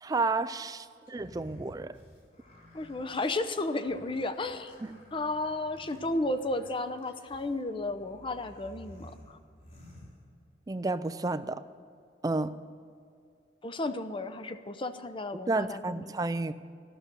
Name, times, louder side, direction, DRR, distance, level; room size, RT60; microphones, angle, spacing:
voice 1, 0.0-1.9 4.8-4.9 10.7-11.6 12.2-12.6 15.5-16.5, right 3 dB, 20° right, 12 dB, 0.4 m, -31 dB
sound 1, 1.1-10.7, left 1 dB, 45° left, 4.0 m, -54 dB
voice 2, 2.7-4.7 5.1-9.4 13.6-16.2, left 2 dB, 30° left, 10 dB, 0.6 m, -33 dB
13.5 x 6.7 x 9.1 m, 2.3 s
head